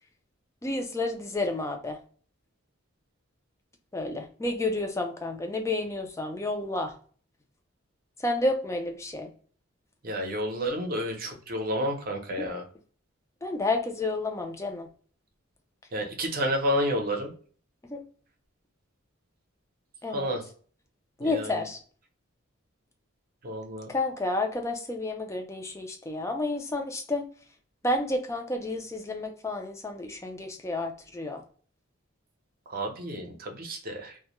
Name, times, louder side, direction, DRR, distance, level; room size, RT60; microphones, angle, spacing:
voice 1, 0.6-2.0 3.9-6.9 8.2-9.3 12.4-12.5 13.4-14.9 17.9-18.0 20.0-20.3 21.2-21.8 23.9-27.3 27.8-31.4, left 2 dB, 15° left, 3 dB, 0.4 m, -30 dB
voice 2, 10.0-12.7 15.9-17.3 20.1-20.4 21.2-21.6 23.4-23.9 32.7-34.2, equal, 45° right, 2 dB, 0.6 m, -30 dB
2.2 x 2.1 x 2.9 m, 0.44 s
head